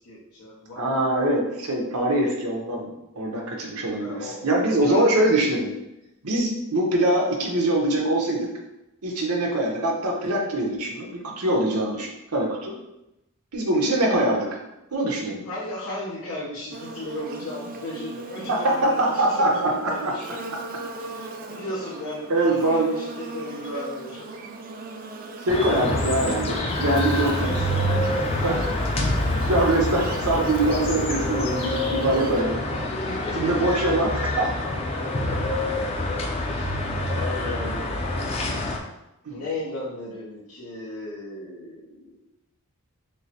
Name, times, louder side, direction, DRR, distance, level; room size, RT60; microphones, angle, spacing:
voice 1, 0.0-1.2 4.0-4.5 4.8-5.2 15.4-20.2 21.0-24.3 32.3-33.7 36.5-36.8 37.1-37.9 39.3-42.3, left 1 dB, 85° left, -8 dB, 1.0 m, -35 dB
voice 2, 0.8-5.7 6.2-8.5 9.0-12.7 13.5-14.6 14.9-15.4 18.5-20.1 22.3-22.9 25.4-27.5 28.4-28.6 29.4-32.6 33.3-34.5 39.2-39.4, right 1 dB, 90° right, 0 dB, 0.9 m, -23 dB
Buzz, 16.7-32.4, right 2 dB, 40° right, 0.4 m, -38 dB
sound 1, 25.5-38.8, left 1 dB, 25° left, 0.4 m, -26 dB
6.2 x 2.1 x 2.9 m, 0.92 s
head